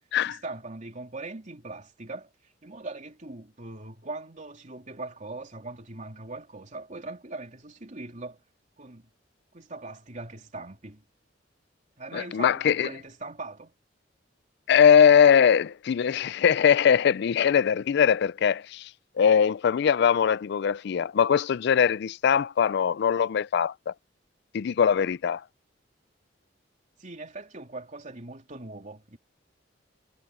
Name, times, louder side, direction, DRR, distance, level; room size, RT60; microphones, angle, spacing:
voice 1, 0.2-8.4 8.8-9.1 9.5-11.0 12.0-13.7 27.0-29.2, right 2 dB, 40° right, 3.1 m, -41 dB
voice 2, 12.1-12.9 14.7-18.9 19.2-23.9 24.5-25.4, left 7 dB, 65° left, 0.4 m, -21 dB
head